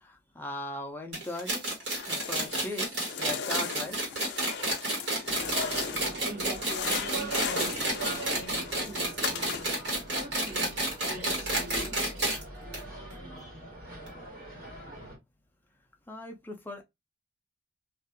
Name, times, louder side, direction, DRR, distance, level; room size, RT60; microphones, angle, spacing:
voice 1, 0.0-1.6 2.1-4.4 16.1-16.8, left 1 dB, 10° left, 0.5 m, -39 dB
sound 1, 1.1-12.4 12.7-12.8 13.1-13.2 14.1-14.2, right 1 dB, 75° right, 1.6 m, -30 dB
sound 2, 1.9-2.7 3.0-6.2 6.5-9.9, left 7 dB, 70° left, 0.4 m, -38 dB
sound 3, 5.3-15.2, right 2 dB, 50° right, 1.5 m, -41 dB
voice 2, 6.2-9.8 10.2-10.8 11.1-11.9, equal, 35° right, 1.3 m, -43 dB
2.6 x 2.4 x 2.5 m
head